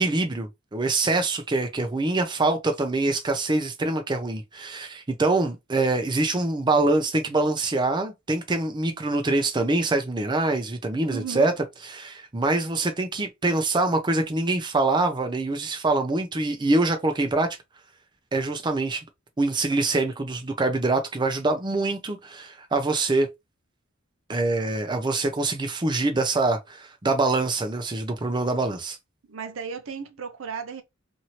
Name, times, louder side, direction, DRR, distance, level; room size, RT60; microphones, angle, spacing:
voice 1, 0.0-11.5 12.0-17.5 18.3-19.0 19.4-23.3 24.3-29.0, right 2 dB, 20° right, 0.5 m, -24 dB
voice 2, 11.1-11.6 29.3-30.8, right 6 dB, 70° right, 0.6 m, -34 dB
2.8 x 2.7 x 2.9 m
head